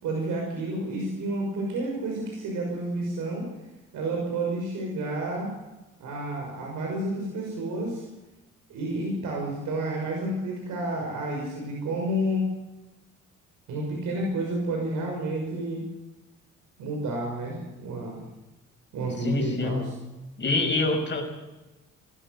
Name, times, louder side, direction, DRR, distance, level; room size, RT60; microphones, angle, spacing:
voice 1, 0.0-3.5 3.9-5.5 6.0-8.0 8.7-12.4 13.7-15.8 16.8-18.2 18.9-19.9, right 1 dB, 85° right, 0 dB, 6.2 m, -30 dB
voice 2, 19.2-19.8 20.4-21.2, left 2 dB, 35° left, 3 dB, 5.8 m, -26 dB
20.5 x 13.5 x 9.6 m, 1.0 s
cardioid pair, 90°, 30 cm